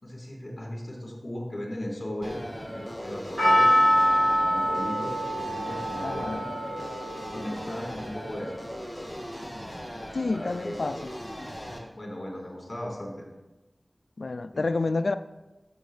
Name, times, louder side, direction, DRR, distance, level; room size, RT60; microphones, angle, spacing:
voice 1, 0.0-2.4 2.7-4.1 4.4-6.5 6.7-6.9 7.3-8.6 10.3-10.8 11.7-13.2 14.5-14.7, left 1 dB, 40° left, 3.8 m, -37 dB
sound 1, 2.2-11.8, equal, 5° right, 2.1 m, -39 dB
Percussion, 3.4-7.7 8.0-8.1, equal, 30° right, 3.1 m, -25 dB
voice 2, 6.0-6.4 10.1-11.1 14.2-15.1, left 3 dB, 85° left, 0.4 m, -29 dB
12.5 x 7.6 x 3.3 m
wide cardioid pair, 60°, 0 cm